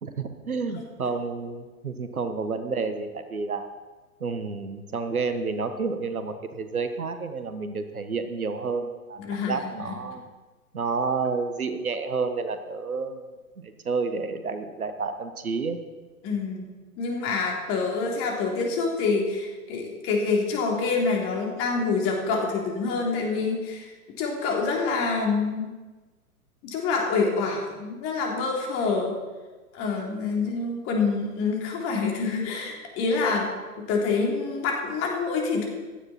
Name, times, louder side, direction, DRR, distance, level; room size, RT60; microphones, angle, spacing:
voice 1, 0.0-3.7 4.2-10.2 10.7-13.3 13.6-15.8, right 4 dB, 75° right, 9 dB, 1.5 m, -30 dB
voice 2, 0.7-1.1 9.2-9.6 9.9-10.0 16.2-16.7 17.0-25.7 26.6-29.1 29.7-33.5 33.8-35.7, left 4 dB, 30° left, 0 dB, 3.3 m, -26 dB
16.0 x 12.5 x 4.3 m, 1.3 s
figure-of-eight pair, 110°, 44 cm